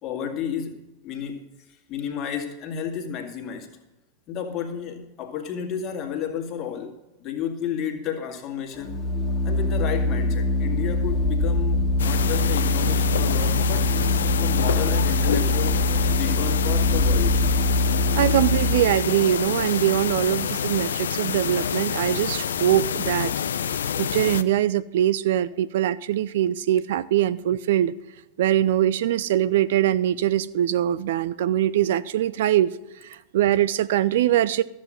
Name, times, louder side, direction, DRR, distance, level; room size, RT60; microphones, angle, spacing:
voice 1, 0.0-3.7 4.3-6.9 7.2-9.0 9.4-14.0 14.4-15.8 16.1-17.4, left 8 dB, 35° left, 1.9 m, -32 dB
Organ, 8.8-19.1, left 1 dB, 15° left, 1.8 m, -23 dB
sound 1, 12.0-24.4, left 8 dB, 65° left, 0.5 m, -27 dB
voice 2, 18.1-23.3 24.0-27.9 28.4-32.8 33.0-34.6, right 12 dB, 55° right, 0.4 m, -22 dB
13.5 x 7.6 x 6.4 m
figure-of-eight pair, 90°, 0 cm